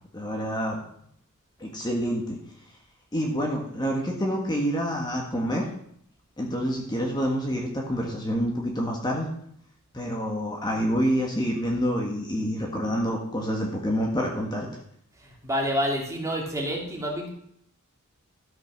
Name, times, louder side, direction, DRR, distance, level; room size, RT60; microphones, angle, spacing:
voice 1, 0.1-0.8 1.6-2.4 3.1-5.7 6.4-9.3 9.9-14.7, equal, 20° left, 0 dB, 1.6 m, -27 dB
voice 2, 15.2-17.3, equal, 15° right, -1 dB, 2.4 m, -28 dB
13.5 x 5.9 x 6.0 m, 0.69 s
head